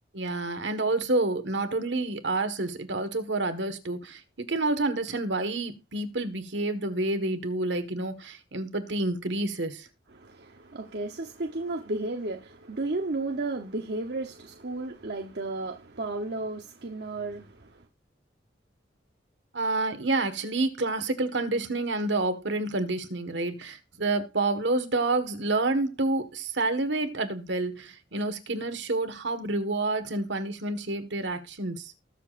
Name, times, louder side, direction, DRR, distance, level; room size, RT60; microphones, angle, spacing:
voice 1, 0.1-4.2 4.5-9.9 19.5-31.9, right 2 dB, 75° right, 1.6 m, -28 dB
voice 2, 10.1-17.8, right 2 dB, 60° right, 0.9 m, -33 dB
20.0 x 7.1 x 2.5 m
head